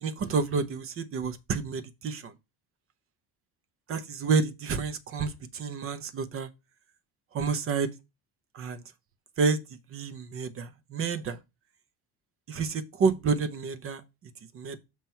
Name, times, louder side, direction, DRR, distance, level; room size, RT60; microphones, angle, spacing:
voice 1, 0.0-2.3 3.9-6.5 7.3-7.9 8.5-8.8 9.4-9.6 9.9-11.4 12.5-14.0 14.5-14.8, right 5 dB, 35° right, 0.7 m, -29 dB
7.3 x 3.1 x 5.5 m
cardioid pair, 175°, 38 cm